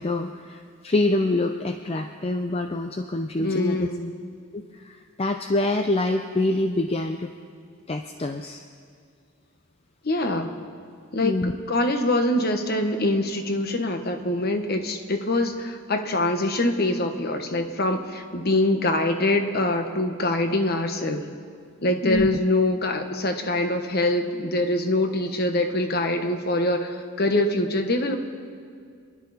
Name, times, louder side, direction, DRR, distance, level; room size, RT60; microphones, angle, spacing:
voice 1, 0.0-3.9 4.5-7.3 7.9-8.6 11.2-11.5 22.0-22.4, left 2 dB, 25° left, 5 dB, 0.5 m, -26 dB
voice 2, 3.4-4.1 10.0-10.5 11.1-21.2 21.8-28.2, left 1 dB, 45° left, 6 dB, 1.2 m, -24 dB
28.0 x 11.0 x 4.2 m, 2.2 s
head